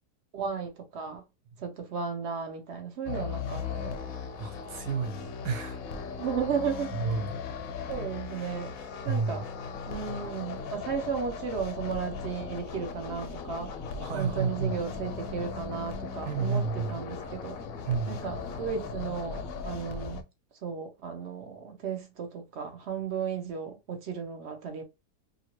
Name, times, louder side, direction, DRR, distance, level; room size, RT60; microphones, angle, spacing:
voice 1, 0.3-1.2 1.6-4.1 6.1-7.0 7.9-8.7 9.0-9.4 9.9-13.7 14.1-17.6 18.1-20.2 20.6-24.8, right 6 dB, 55° right, 0.8 m, -34 dB
sound 1, 3.1-20.2, left 5 dB, 70° left, 0.9 m, -38 dB
voice 2, 4.4-5.8 6.9-7.4 9.1-9.5 14.0-14.8 16.2-17.0 17.8-18.2, right 5 dB, 75° right, 1.3 m, -31 dB
2.8 x 2.7 x 3.0 m
omnidirectional pair, 1.8 m